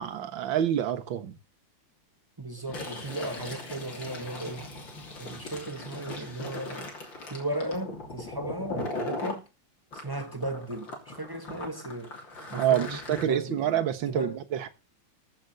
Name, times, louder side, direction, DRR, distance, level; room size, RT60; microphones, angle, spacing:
voice 1, 0.0-1.4 12.5-14.7, right 10 dB, 65° right, 1.9 m, -27 dB
voice 2, 2.4-4.7 5.2-6.9 7.3-9.5 9.9-12.2 12.5-14.4, right 1 dB, 15° right, 0.7 m, -36 dB
Fill (with liquid), 2.6-9.4 9.9-13.2, left 2 dB, 60° left, 3.8 m, -39 dB
14.0 x 6.3 x 6.8 m
omnidirectional pair, 2.4 m